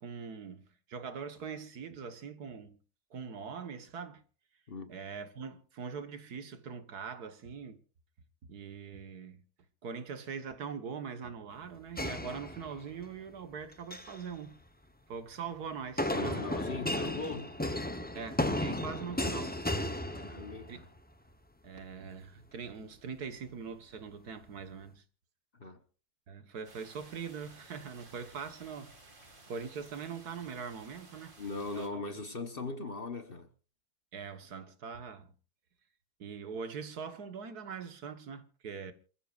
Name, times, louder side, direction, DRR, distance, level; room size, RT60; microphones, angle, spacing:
voice 1, 0.0-2.8 3.1-4.2 4.9-7.8 8.5-9.4 9.8-14.6 15.1-16.5 18.1-19.6 20.7-20.8 21.6-25.0 26.3-28.9 29.5-31.4 31.7-32.0 34.1-35.3 36.2-38.9, right 6 dB, 70° right, 1.8 m, -42 dB
sound 1, 12.0-13.0 13.7-14.2 16.0-20.8, left 1 dB, 10° left, 0.6 m, -34 dB
voice 2, 16.1-17.5 20.1-20.9 25.6-25.8 31.4-33.5, left 3 dB, 40° left, 1.1 m, -39 dB
sound 2, 26.6-31.9, right 2 dB, 30° right, 2.4 m, -56 dB
27.5 x 14.5 x 2.5 m
omnidirectional pair, 1.7 m